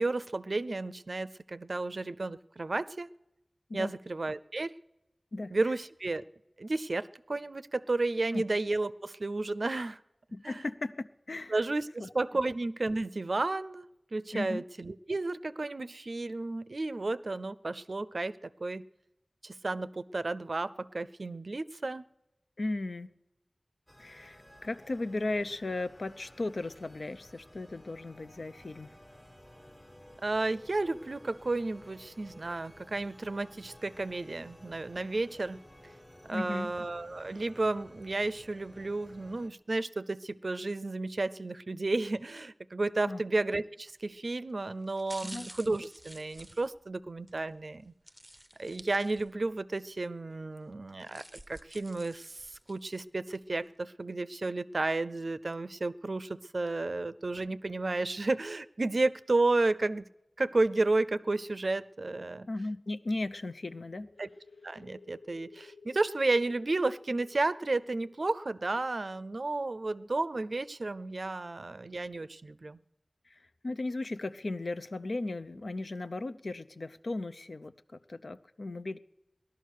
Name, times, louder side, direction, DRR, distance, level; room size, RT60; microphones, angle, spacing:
voice 1, 0.0-3.1 3.7-4.7 5.5-6.2 6.6-10.0 10.4-10.6 11.5-18.8 19.4-22.0 30.2-35.6 36.3-47.9 48.6-60.1 60.4-62.5 64.2-64.3 64.6-72.8, right 2 dB, 75° right, 15 dB, 0.4 m, -32 dB
voice 2, 10.3-11.5 12.0-12.1 14.3-14.6 22.6-23.2 24.0-28.9 36.3-36.7 43.0-43.2 45.2-45.5 62.5-64.1 73.3-79.0, left 2 dB, 85° left, 11 dB, 0.5 m, -36 dB
sound 1, 23.9-39.5, left 1 dB, 30° left, 1.4 m, -54 dB
sound 2, 43.9-44.1 44.8-47.4 48.1-49.5 49.9-50.0 50.8-53.0 53.4-53.5, right 1 dB, 15° right, 0.6 m, -51 dB
sound 3, 64.0-71.4, left 4 dB, 60° left, 1.6 m, -57 dB
17.5 x 11.5 x 6.4 m, 0.93 s
wide cardioid pair, 45°, 0 cm